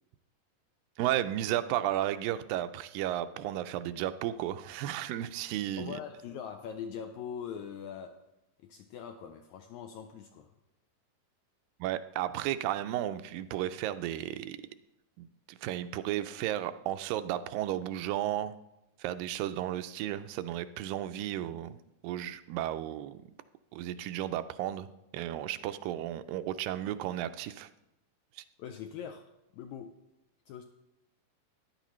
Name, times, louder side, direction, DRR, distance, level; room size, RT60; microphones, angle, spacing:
voice 1, 1.0-6.0 11.8-14.6 15.2-15.3 15.6-18.5 19.0-21.8 22.0-23.3 23.7-24.9 25.1-27.7 28.4-28.5, right 12 dB, 90° right, 11 dB, 2.3 m, -33 dB
voice 2, 5.8-8.2 8.6-10.5 28.6-29.3 29.5-30.0 30.5-30.6, left 8 dB, 85° left, 6 dB, 1.7 m, -42 dB
14.5 x 11.0 x 3.1 m, 0.90 s
omnidirectional pair, 3.9 m